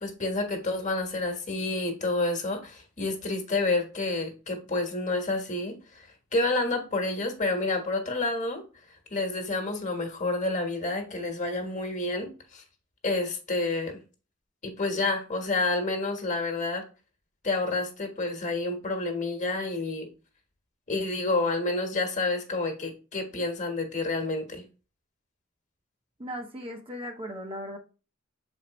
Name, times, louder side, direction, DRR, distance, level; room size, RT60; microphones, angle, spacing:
voice 1, 0.0-8.6 9.1-12.6 13.0-14.0 14.6-16.9 17.4-20.1 20.9-24.6, left 2 dB, 40° left, 1.4 m, -29 dB
voice 2, 26.2-27.8, equal, 25° right, 0.9 m, -37 dB
7.2 x 4.5 x 3.1 m
head